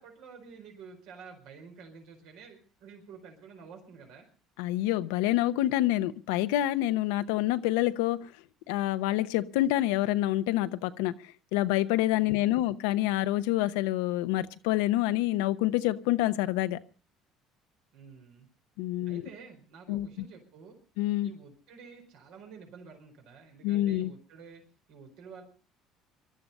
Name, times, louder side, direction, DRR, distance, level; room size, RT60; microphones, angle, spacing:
voice 1, 0.0-4.3 12.2-12.7 17.9-18.5 19.1-20.8 21.2-24.6 24.9-25.4, right 5 dB, 75° right, 3 dB, 4.5 m, -50 dB
voice 2, 4.6-8.2 8.7-11.1 11.5-16.8 18.8-19.2 19.9-20.1 21.0-21.3 23.6-24.1, left 15 dB, 85° left, 12 dB, 0.8 m, -27 dB
20.0 x 12.5 x 5.4 m, 0.39 s
supercardioid pair, 85°, 0 cm